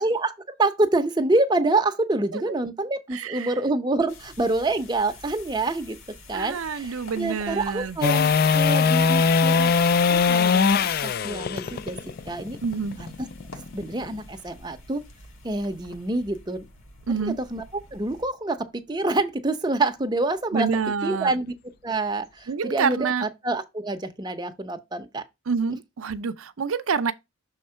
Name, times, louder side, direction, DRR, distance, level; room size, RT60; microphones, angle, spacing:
voice 1, 0.0-6.0 6.3-9.7 10.1-12.0 12.3-12.6 13.0-13.3 13.7-15.0 15.4-16.7 17.2-17.6 17.9-20.7 21.0-21.5 21.8-25.2, right 2 dB, 20° right, 0.6 m, -27 dB
voice 2, 3.1-3.5 6.3-8.0 12.6-13.0 17.1-17.4 20.5-21.3 22.5-23.3 25.5-27.1, right 5 dB, 75° right, 0.5 m, -27 dB
sound 1, 4.1-18.3, left 1 dB, 85° left, 1.6 m, -48 dB
sound 2, 8.0-14.1 20.7-20.8, left 5 dB, 45° left, 0.3 m, -21 dB
6.4 x 3.7 x 4.3 m
head